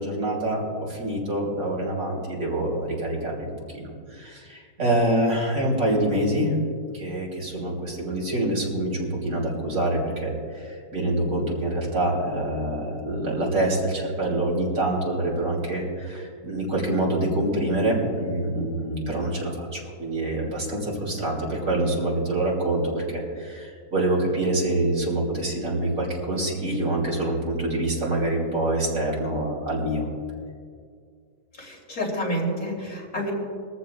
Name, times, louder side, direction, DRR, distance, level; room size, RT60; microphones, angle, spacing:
voice 1, 0.0-3.5 3.7-6.5 6.9-30.1, right 1 dB, 60° right, -2 dB, 3.5 m, -26 dB
voice 2, 31.6-33.3, equal, 70° left, -3 dB, 3.7 m, -29 dB
22.0 x 14.5 x 2.3 m, 2.2 s
omnidirectional pair, 1.6 m